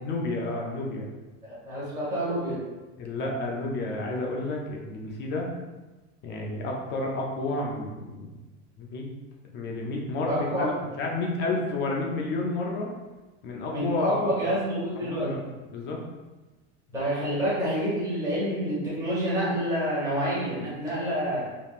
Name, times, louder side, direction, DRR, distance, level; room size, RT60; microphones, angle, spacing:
voice 1, 0.0-1.1 3.0-5.5 6.2-8.4 8.8-9.1 9.5-10.7 11.0-12.9 13.4-14.3 15.0-15.4 15.7-16.0, left 2 dB, 30° left, 0 dB, 0.4 m, -30 dB
voice 2, 1.4-2.6 10.3-10.7 13.7-15.3 16.9-21.5, equal, 10° right, -9 dB, 1.2 m, -28 dB
3.5 x 2.9 x 2.3 m, 1.2 s
cardioid pair, 165°, 36 cm